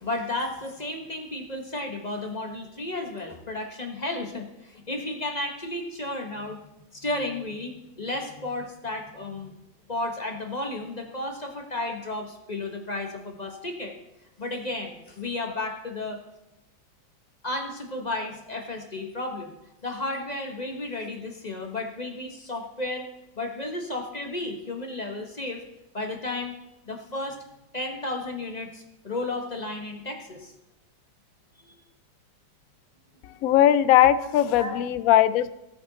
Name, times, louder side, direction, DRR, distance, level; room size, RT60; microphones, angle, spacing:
voice 1, 0.0-6.6 6.9-9.5 9.9-13.9 14.4-16.2 17.4-19.5 19.8-23.1 23.4-25.6 25.9-26.6 26.9-27.4 27.7-30.5 31.6-31.8 34.6-34.7, left 2 dB, 25° left, 3 dB, 1.2 m, -33 dB
voice 2, 33.4-35.5, left 12 dB, 75° left, 15 dB, 0.8 m, -19 dB
18.5 x 7.8 x 4.0 m, 0.90 s
omnidirectional pair, 2.0 m